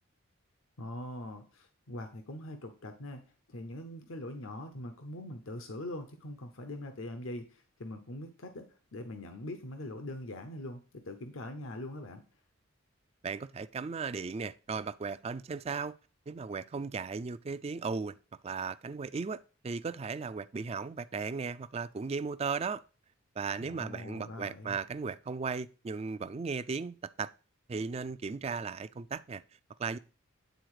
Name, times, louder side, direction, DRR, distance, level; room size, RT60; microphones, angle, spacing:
voice 1, 0.8-3.2 3.5-8.7 8.9-12.2 23.6-24.8, left 1 dB, 75° left, 0.9 m, -42 dB
voice 2, 13.2-15.9 16.3-18.2 18.4-22.8 23.4-27.3 27.7-29.4 29.8-30.0, right 5 dB, 30° right, 0.3 m, -36 dB
9.3 x 4.1 x 4.8 m
head